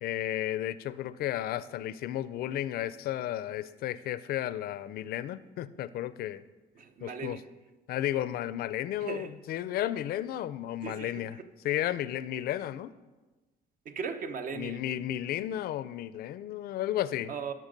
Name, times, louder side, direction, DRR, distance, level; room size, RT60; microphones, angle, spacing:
voice 1, 0.0-6.4 7.0-7.4 7.9-11.4 11.6-12.9 14.6-17.3, left 12 dB, 65° left, 16 dB, 0.5 m, -33 dB
voice 2, 6.8-7.4 9.0-9.3 10.8-11.5 13.8-14.8 17.3-17.5, right 5 dB, 55° right, 8 dB, 0.9 m, -38 dB
12.0 x 6.2 x 5.3 m, 1.2 s
cardioid pair, 110°, 17 cm